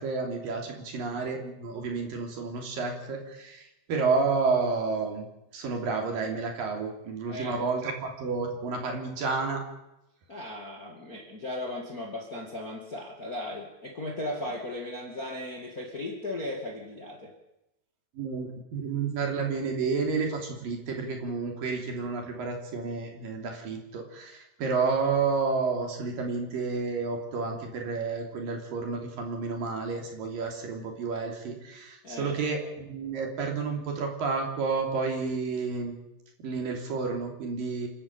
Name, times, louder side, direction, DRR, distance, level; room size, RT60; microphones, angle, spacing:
voice 1, 0.0-9.6 18.1-36.0 36.4-37.9, right 4 dB, 55° right, 3 dB, 4.5 m, -30 dB
voice 2, 7.3-7.6 10.3-17.3 32.0-32.4, left 1 dB, 30° left, 2 dB, 1.8 m, -37 dB
28.0 x 12.0 x 9.0 m, 0.93 s
omnidirectional pair, 4.9 m